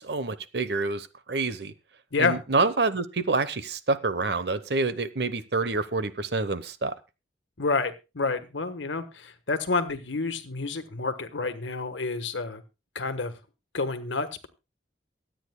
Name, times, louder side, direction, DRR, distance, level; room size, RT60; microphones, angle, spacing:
voice 1, 0.0-1.7 2.2-7.0, right 3 dB, 60° right, 13 dB, 0.9 m, -27 dB
voice 2, 7.6-12.6 12.9-13.3 13.7-14.5, left 3 dB, 85° left, 9 dB, 1.3 m, -29 dB
23.5 x 8.9 x 2.2 m, 0.28 s
head